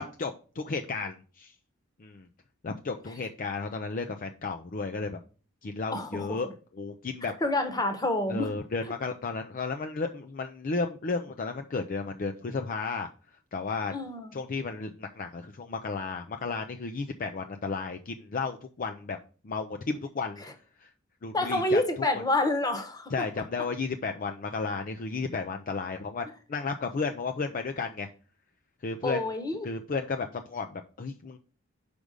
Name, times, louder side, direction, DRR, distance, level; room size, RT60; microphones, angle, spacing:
voice 1, 0.0-1.5 2.0-2.3 2.6-5.2 5.6-7.3 8.3-13.1 13.5-13.9 14.3-19.2 19.4-20.4 20.8-20.9 21.2-21.8 22.1-22.2 23.1-28.1 28.8-29.3 29.6-31.4, left 4 dB, 45° left, 0.5 m, -33 dB
voice 2, 5.9-6.4 7.4-8.5 13.9-14.3 21.3-23.1 29.0-29.7, left 1 dB, 20° left, 1.1 m, -28 dB
5.2 x 4.9 x 6.4 m
head